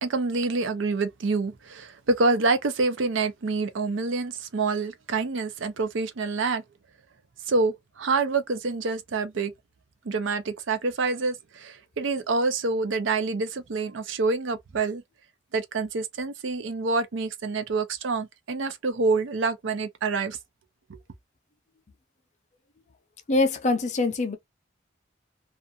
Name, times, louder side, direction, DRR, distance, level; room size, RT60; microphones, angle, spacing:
voice 1, 0.0-6.6 7.5-9.5 10.0-15.0 15.5-20.4 20.9-21.0, right 3 dB, 75° right, 0.5 m, -27 dB
voice 2, 23.3-24.4, left 3 dB, 35° left, 0.5 m, -23 dB
2.4 x 2.3 x 2.6 m
head